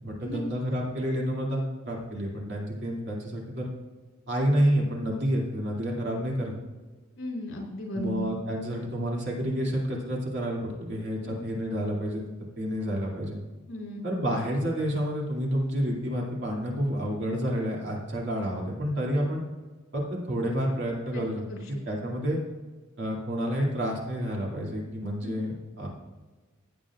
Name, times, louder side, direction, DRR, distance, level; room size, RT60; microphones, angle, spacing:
voice 1, 0.0-3.7 4.3-6.5 7.9-12.2 12.6-13.4 14.0-19.4 19.9-21.4 21.9-22.4 23.0-25.9, equal, 55° right, -2 dB, 2.5 m, -29 dB
voice 2, 7.2-8.3 11.2-11.3 13.1-13.2 13.7-14.1 21.1-21.2 21.5-21.8 25.2-25.3, left 1 dB, 75° left, -2 dB, 3.4 m, -36 dB
15.5 x 8.6 x 2.4 m, 1.3 s
head